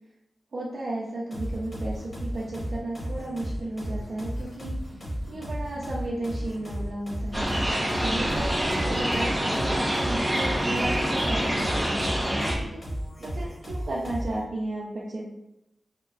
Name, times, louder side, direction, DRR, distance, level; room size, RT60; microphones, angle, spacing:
voice 1, 0.5-7.5 8.0-11.8 12.2-12.8 13.2-15.3, right 1 dB, 75° right, -6 dB, 0.5 m, -34 dB
sound 1, 1.3-14.4, equal, 50° left, 1.2 m, -34 dB
sound 2, 7.3-12.6, equal, 15° right, 0.7 m, -26 dB
3.5 x 2.0 x 2.4 m, 0.85 s
wide cardioid pair, 80°, 0 cm